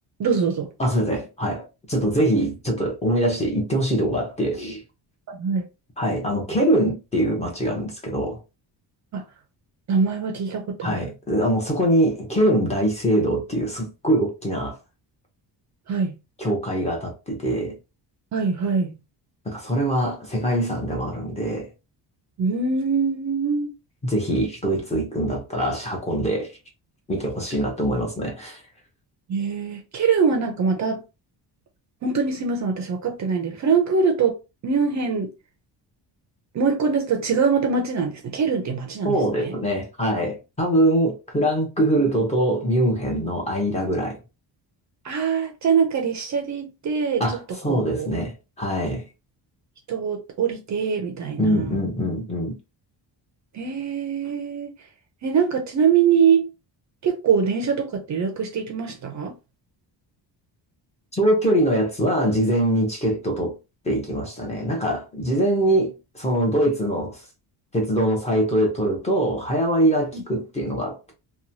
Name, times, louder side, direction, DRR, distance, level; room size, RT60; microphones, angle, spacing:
voice 1, 0.2-0.7 5.3-5.7 9.1-9.2 9.9-11.0 15.9-16.2 18.3-19.0 22.4-23.7 29.3-31.0 32.0-34.3 34.6-35.3 36.5-39.5 45.0-47.2 47.7-48.1 49.9-51.8 53.5-54.7 55.2-56.5 57.0-59.3 70.1-70.2, right 6 dB, 40° right, 0.5 m, -23 dB
voice 2, 0.8-4.8 6.0-8.4 10.8-14.8 16.4-17.8 19.5-21.7 24.0-26.5 27.1-28.6 39.0-44.2 47.2-49.0 51.4-52.5 61.2-63.6 63.8-67.2 67.7-71.1, right 1 dB, 15° left, 0.7 m, -23 dB
3.0 x 2.2 x 2.6 m
cardioid pair, 170°, 43 cm